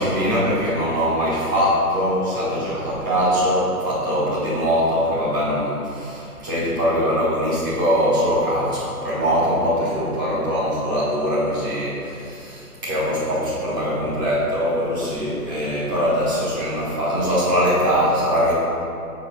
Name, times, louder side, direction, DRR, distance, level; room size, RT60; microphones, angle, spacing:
voice 1, 0.0-18.5, equal, 15° right, -9 dB, 1.1 m, -22 dB
6.0 x 3.9 x 5.9 m, 2.6 s
figure-of-eight pair, 150°, 46 cm